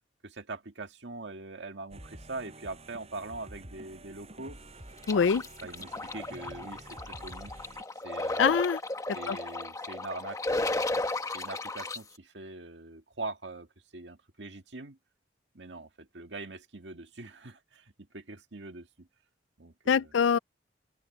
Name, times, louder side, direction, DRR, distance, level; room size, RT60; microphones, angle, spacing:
voice 1, 0.2-4.6 5.6-7.5 8.0-8.6 9.1-11.1 11.3-13.7 13.9-15.0 15.5-19.1 19.6-20.1, right 3 dB, 70° right, 2.0 m, -42 dB
sound 1, 1.9-7.8, right 1 dB, 35° right, 6.8 m, -49 dB
sound 2, 5.0-12.0, left 2 dB, 20° left, 1.3 m, -34 dB
voice 2, 5.1-5.4 8.4-8.8 9.3-9.4 19.9-20.4, left 6 dB, 85° left, 0.4 m, -24 dB
head